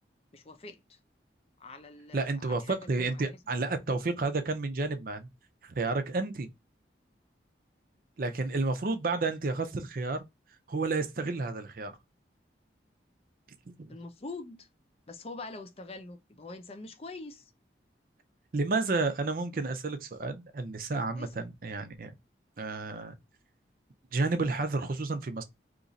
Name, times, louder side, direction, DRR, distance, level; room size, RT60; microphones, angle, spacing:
voice 1, 0.3-1.0 1.6-3.4 13.9-14.7 15.1-17.5 21.1-21.3, left 3 dB, 35° left, 0.5 m, -44 dB
voice 2, 2.1-5.3 5.6-6.5 8.2-10.2 10.7-12.0 13.7-13.9 18.5-22.1 22.6-23.1 24.1-25.4, right 3 dB, 50° right, 0.5 m, -31 dB
2.8 x 2.5 x 4.0 m
head